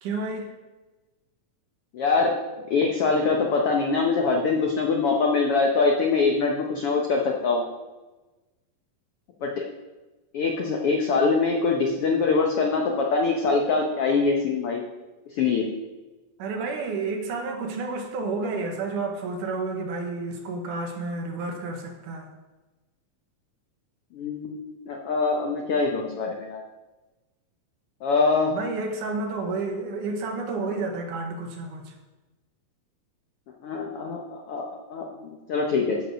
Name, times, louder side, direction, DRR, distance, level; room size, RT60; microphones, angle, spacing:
voice 1, 0.0-0.5 16.4-22.3 28.5-31.9, right 3 dB, 70° right, 3 dB, 2.5 m, -30 dB
voice 2, 1.9-7.6 9.4-9.6 10.3-14.8 15.3-15.7 24.1-26.6 28.0-28.6 33.6-36.0, left 4 dB, 85° left, 1 dB, 1.2 m, -24 dB
13.0 x 5.1 x 6.3 m, 1.1 s
omnidirectional pair, 4.1 m